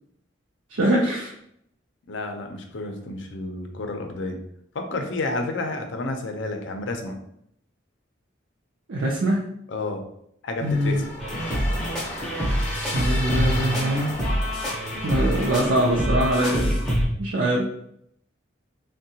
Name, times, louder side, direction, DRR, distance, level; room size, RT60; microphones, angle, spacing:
voice 1, 0.7-1.3 8.9-9.5 10.6-11.0 12.9-14.2 15.0-16.8 17.2-17.7, right 1 dB, 80° right, -3 dB, 0.5 m, -23 dB
voice 2, 2.1-4.4 4.7-7.2 9.7-10.0 10.4-11.0, left 2 dB, 70° left, 4 dB, 0.5 m, -30 dB
sound 1, 10.6-16.0, left 1 dB, 35° left, 0.8 m, -34 dB
sound 2, 11.2-17.1, equal, ahead, 0.5 m, -26 dB
3.6 x 2.2 x 2.7 m, 0.71 s
head